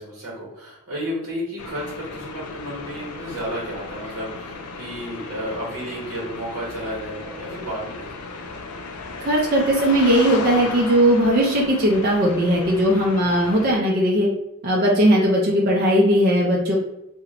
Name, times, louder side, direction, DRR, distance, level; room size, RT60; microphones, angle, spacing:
voice 1, 0.0-8.3, equal, 65° right, -5 dB, 0.8 m, -32 dB
sound 1, 1.6-13.7, left 4 dB, 80° left, 0.4 m, -35 dB
voice 2, 9.2-14.3 14.6-16.8, equal, 45° right, -2 dB, 0.4 m, -18 dB
2.9 x 2.1 x 2.4 m, 0.88 s
head